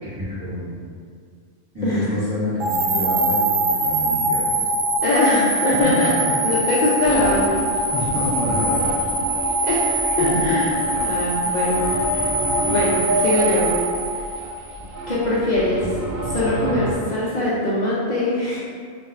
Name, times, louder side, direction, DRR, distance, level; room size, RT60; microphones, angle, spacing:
voice 1, 0.0-0.8 1.7-4.7 5.8-6.3 7.9-9.3 10.2-10.6 12.6-12.7, left 1 dB, 25° right, -12 dB, 1.5 m, -28 dB
sound 1, 2.6-14.8, right 1 dB, 85° right, 1.0 m, -23 dB
voice 2, 5.0-6.1 6.4-7.6 9.6-12.3 12.7-13.7 15.1-15.9 16.2-18.6, left 1 dB, 90° left, -8 dB, 0.4 m, -22 dB
sound 2, 7.0-16.9, right 1 dB, 55° right, 0.6 m, -28 dB
4.2 x 2.5 x 2.4 m, 2.1 s
omnidirectional pair, 1.4 m